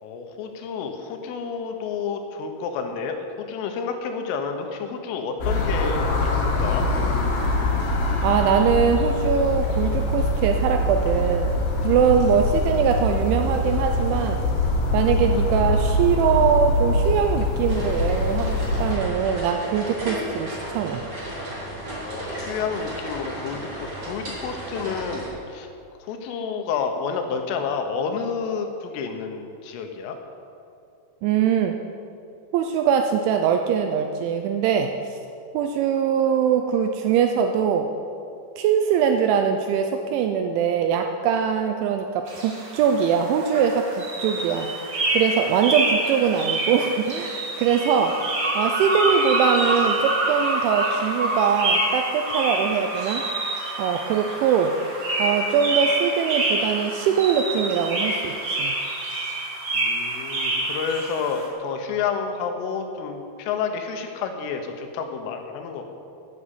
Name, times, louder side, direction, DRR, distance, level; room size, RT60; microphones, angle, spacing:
voice 1, 0.0-6.9 22.0-25.7 26.0-30.2 59.7-65.8, left 5 dB, 80° left, 5 dB, 3.6 m, -30 dB
sound 1, 5.4-18.9, left 2 dB, 60° left, 3.4 m, -23 dB
voice 2, 8.2-11.5 11.8-14.4 14.9-21.0 31.2-31.8 32.5-35.2 35.5-37.9 38.6-44.7 45.1-48.2 48.6-53.3 53.8-54.8 55.2-58.7, right 7 dB, 80° right, 5 dB, 2.7 m, -22 dB
sound 2, 17.7-25.3, right 1 dB, 25° right, 3.6 m, -34 dB
sound 3, 42.3-61.5, right 2 dB, 40° right, 1.8 m, -26 dB
13.0 x 8.4 x 8.3 m, 2.5 s
omnidirectional pair, 5.9 m